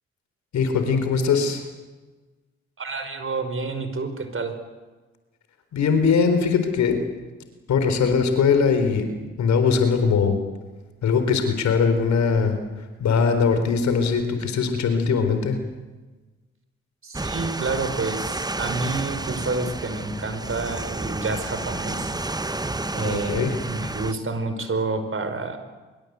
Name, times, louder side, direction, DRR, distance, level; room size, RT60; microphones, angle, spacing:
voice 1, 0.5-1.7 5.7-7.0 7.7-9.1 9.4-10.4 11.0-12.6 13.0-15.6 23.0-23.5, left 5 dB, 70° left, 7 dB, 4.1 m, -21 dB
voice 2, 2.8-4.6 17.0-22.1 22.9-25.6, right 3 dB, 45° right, 8 dB, 5.0 m, -29 dB
sound 1, 17.1-24.1, right 2 dB, 15° right, 1.2 m, -31 dB
24.5 x 23.0 x 8.2 m, 1.2 s
hypercardioid pair, 45°, 29 cm